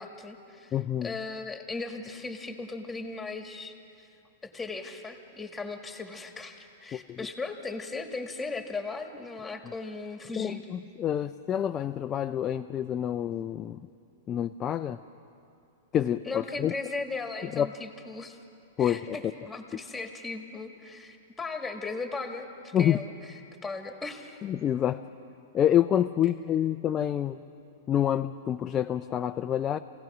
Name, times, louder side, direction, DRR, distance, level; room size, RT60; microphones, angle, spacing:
voice 1, 0.0-0.8 1.0-4.1 4.4-10.6 16.3-18.4 18.8-23.1 23.6-24.4 26.2-26.3, left 3 dB, 5° left, 4 dB, 1.8 m, -37 dB
voice 2, 0.7-1.1 6.9-7.3 10.4-13.8 14.3-15.0 15.9-16.7 17.5-17.7 18.8-19.2 22.7-23.0 24.4-25.0 25.5-27.4 27.9-29.8, left 10 dB, 25° left, 7 dB, 0.4 m, -27 dB
26.0 x 17.0 x 6.1 m, 2.6 s
hypercardioid pair, 140°, 0 cm